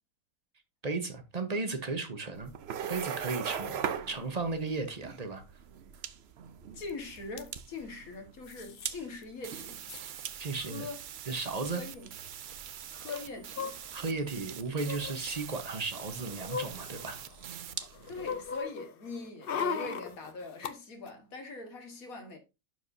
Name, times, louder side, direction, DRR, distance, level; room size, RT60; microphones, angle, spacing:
voice 1, 0.8-2.5 2.9-3.8 4.1-5.4 10.4-10.9 11.3-11.8 13.9-17.2, right 3 dB, 30° right, 1.0 m, -35 dB
sound 1, 2.3-18.6, right 8 dB, 55° right, 0.8 m, -42 dB
voice 2, 6.7-9.8 10.6-11.0 11.7-12.1 12.9-13.8 18.1-22.4, left 3 dB, 80° left, 2.1 m, -42 dB
sound 2, 6.9-7.0 7.2-7.5 8.5-8.9 9.2-9.3 9.5-10.1 11.0-11.1 11.3-11.5 13.1-14.2 14.8-15.2 15.8-17.4 17.8-20.7 21.1-21.2, left 6 dB, 55° left, 0.7 m, -38 dB
sound 3, 9.4-17.8, right 9 dB, 85° right, 0.4 m, -45 dB
11.5 x 4.7 x 2.7 m
omnidirectional pair, 1.5 m